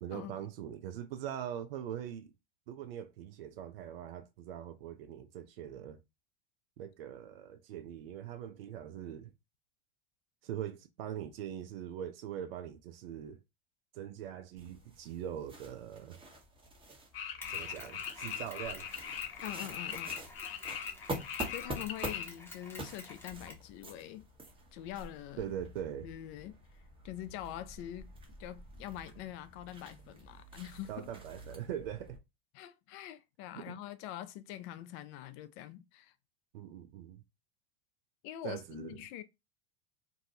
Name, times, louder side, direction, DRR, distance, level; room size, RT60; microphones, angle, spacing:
voice 1, 0.0-2.3 2.7-6.0 6.8-9.3 10.4-13.4 13.9-16.2 17.5-18.9 25.4-26.1 30.9-32.2 33.5-33.8 36.5-37.2 38.4-39.0, right 10 dB, 75° right, 0.5 m, -42 dB
sound 1, 14.6-32.2, right 1 dB, 20° right, 1.0 m, -47 dB
sound 2, 17.1-22.3, left 8 dB, 75° left, 0.7 m, -40 dB
Mechanisms, 17.4-23.7, left 2 dB, 10° left, 0.8 m, -51 dB
voice 2, 19.4-20.2 21.5-24.3 24.7-25.5 26.0-26.6 27.0-28.1 28.4-31.1 32.5-36.1 38.2-39.2, left 12 dB, 45° left, 0.4 m, -44 dB
2.6 x 2.3 x 2.6 m
hypercardioid pair, 90°, 29 cm